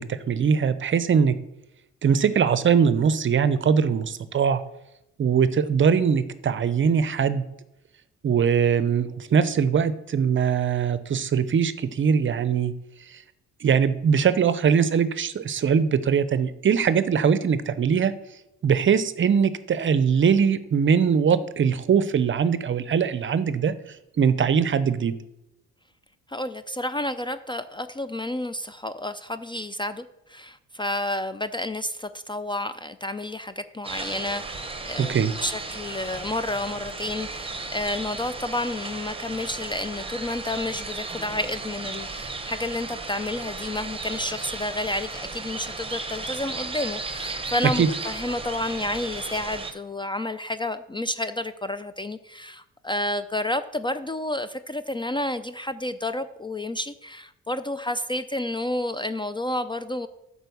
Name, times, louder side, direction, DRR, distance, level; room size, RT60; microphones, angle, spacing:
voice 1, 0.0-1.3 2.0-4.6 5.2-7.4 8.2-12.7 13.1-13.2 13.6-18.1 18.6-23.7 24.2-25.1 35.0-35.3 47.8-47.9, right 7 dB, 40° right, 14 dB, 0.6 m, -21 dB
voice 2, 26.3-60.1, left 1 dB, 15° left, 12 dB, 0.4 m, -30 dB
sound 1, 33.8-49.7, right 3 dB, 20° right, 1.0 m, -35 dB
8.9 x 4.3 x 6.9 m, 0.88 s
cardioid pair, 90°, 30 cm